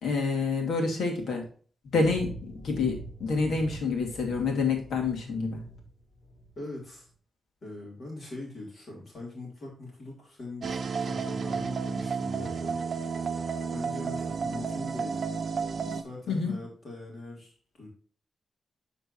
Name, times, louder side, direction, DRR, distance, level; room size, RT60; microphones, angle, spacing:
voice 1, 0.0-1.4 1.9-5.6 16.3-16.6, left 4 dB, 80° left, 1 dB, 2.5 m, -28 dB
sound 1, 2.0-6.6, right 1 dB, 60° left, 3.3 m, -44 dB
voice 2, 6.6-7.1 7.6-10.8 11.1-12.8 13.7-15.3 15.9-17.9, left 2 dB, 40° left, -3 dB, 3.3 m, -42 dB
sound 2, 10.6-16.0, right 5 dB, 45° right, 0.7 m, -32 dB
12.5 x 4.4 x 2.8 m, 0.42 s
wide cardioid pair, 155°, 0 cm